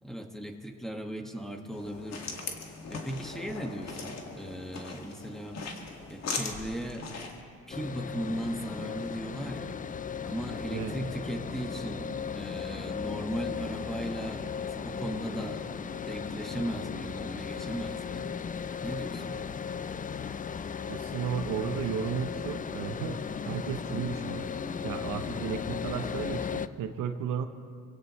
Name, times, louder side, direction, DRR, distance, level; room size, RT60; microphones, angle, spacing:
voice 1, 0.0-2.3 2.9-5.6 6.1-7.1 7.7-9.8 10.2-15.6 16.1-18.3 18.8-19.4, right 1 dB, ahead, 3 dB, 1.7 m, -37 dB
sound 1, 1.7-7.4, left 4 dB, 60° left, 2.1 m, -39 dB
sound 2, 7.7-26.7, left 7 dB, 25° left, 0.4 m, -36 dB
voice 2, 20.9-23.2 23.5-24.5 24.8-27.5, right 8 dB, 90° right, 7 dB, 1.0 m, -34 dB
26.0 x 17.0 x 3.2 m, 2.3 s
cardioid pair, 90°, 30 cm